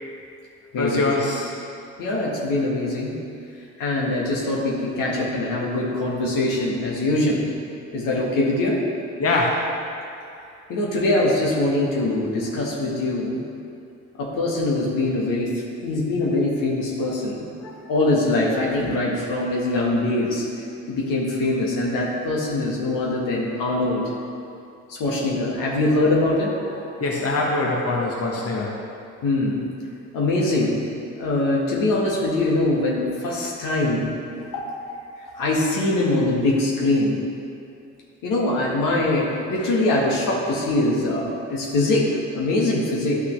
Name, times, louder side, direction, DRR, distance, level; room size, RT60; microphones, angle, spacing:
voice 1, 0.8-1.6 9.2-9.7 27.0-28.8 39.6-39.7, left 2 dB, 45° left, -2 dB, 1.3 m, -23 dB
voice 2, 2.0-3.1 3.8-7.4 7.9-8.8 10.7-13.4 14.2-15.5 15.8-20.5 20.9-24.0 24.9-26.8 29.2-29.6 30.1-30.8 31.2-34.1 34.5-35.0 35.3-37.2 38.2-42.1 42.3-43.2, left 2 dB, 75° left, -3 dB, 1.7 m, -23 dB
11.5 x 5.7 x 3.4 m, 2.6 s
hypercardioid pair, 55°, 33 cm